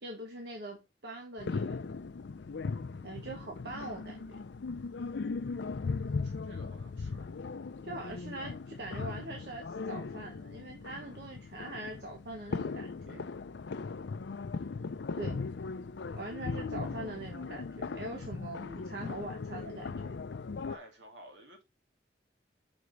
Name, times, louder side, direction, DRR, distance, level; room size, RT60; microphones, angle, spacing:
voice 1, 0.0-1.8 3.0-4.4 7.8-13.2 15.2-15.4 16.1-20.2, right 2 dB, 65° right, 1.3 m, -43 dB
sound 1, 1.4-20.8, left 4 dB, 80° left, 0.5 m, -38 dB
voice 2, 6.1-7.3 20.7-21.6, right 1 dB, 85° right, 2.5 m, -53 dB
6.1 x 5.1 x 4.0 m
head